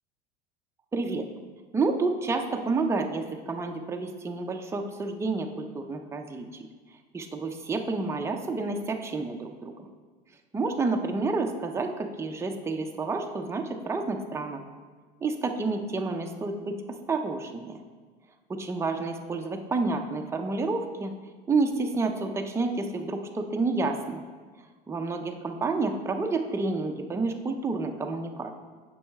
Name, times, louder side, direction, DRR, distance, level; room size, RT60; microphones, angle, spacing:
voice 1, 0.9-1.3 1.7-6.7 7.1-9.9 10.5-14.6 15.2-16.8 17.1-17.8 18.5-21.1 21.5-24.2 24.9-28.5, right 3 dB, 10° right, 3 dB, 0.6 m, -29 dB
7.9 x 5.5 x 3.5 m, 1.5 s
supercardioid pair, 105°, 21 cm